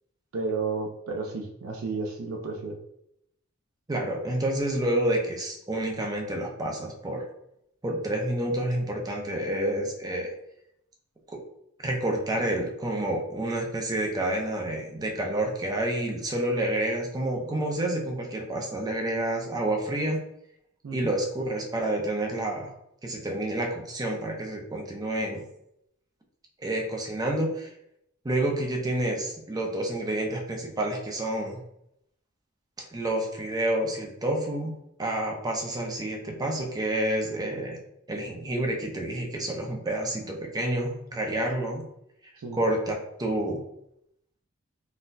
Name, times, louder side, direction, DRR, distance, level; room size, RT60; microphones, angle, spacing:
voice 1, 0.3-2.8 20.8-21.1 42.4-42.6, right 4 dB, 85° right, 0 dB, 0.5 m, -32 dB
voice 2, 3.9-7.2 7.8-10.3 11.8-20.2 20.9-22.7 23.0-25.4 26.6-27.7 28.2-31.6 32.8-34.7 35.0-37.8 38.1-41.8 42.5-42.9 43.2-43.6, right 1 dB, 20° right, 0 dB, 0.5 m, -29 dB
4.0 x 2.1 x 2.6 m, 0.76 s
head